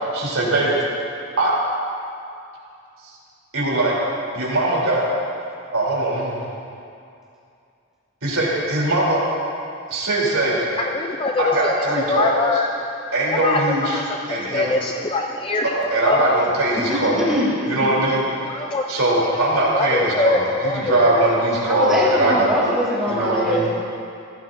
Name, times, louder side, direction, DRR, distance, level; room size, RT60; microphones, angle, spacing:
voice 1, 0.1-0.8 1.4-1.5 3.5-4.0 4.3-5.0 5.7-6.4 8.2-9.2 9.9-10.6 11.4-12.3 13.1-14.7 15.6-17.3 17.7-18.3 18.9-22.5 23.1-23.7, right 1 dB, 85° right, -5 dB, 3.2 m, -21 dB
voice 2, 10.8-11.7 12.1-12.7 13.3-15.8 16.0-16.4 18.5-18.8 19.7-21.2, left 3 dB, 25° left, 2 dB, 0.4 m, -23 dB
voice 3, 16.7-17.5 17.8-18.1 21.6-23.7, equal, 5° right, -8 dB, 3.4 m, -22 dB
17.0 x 15.5 x 2.6 m, 2.5 s
head